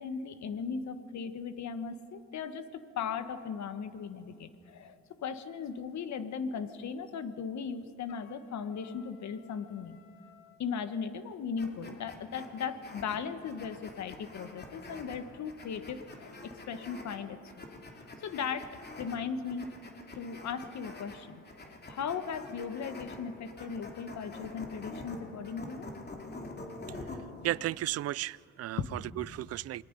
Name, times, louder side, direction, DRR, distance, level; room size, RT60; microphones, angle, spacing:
voice 1, 0.0-10.0 10.6-17.6 18.2-19.7 20.1-25.9 28.8-28.9, left 6 dB, 65° left, 11 dB, 1.4 m, -37 dB
Trumpet, 8.1-10.6, left 8 dB, 85° left, 1.8 m, -59 dB
sound 1, 11.6-27.6, left 2 dB, 35° left, 2.9 m, -46 dB
voice 2, 26.9-27.2 27.4-29.8, right 14 dB, 55° right, 22 dB, 0.4 m, -35 dB
28.0 x 20.5 x 5.3 m, 2.4 s
cardioid pair, 90°, 30 cm